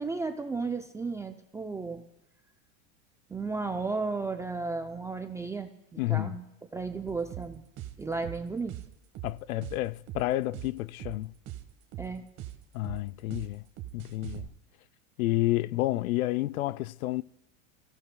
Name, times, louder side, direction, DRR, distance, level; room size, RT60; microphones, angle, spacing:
voice 1, 0.0-2.0 3.3-6.4 6.7-7.6 8.0-8.8 12.0-12.2, right 4 dB, 10° right, 0.4 m, -34 dB
voice 2, 6.0-6.4 9.2-11.3 12.7-13.6 13.9-14.5 15.2-17.2, left 17 dB, 80° left, 0.6 m, -30 dB
sound 1, 7.1-14.5, right 13 dB, 40° right, 1.5 m, -42 dB
28.5 x 16.0 x 2.2 m
supercardioid pair, 130°, 41 cm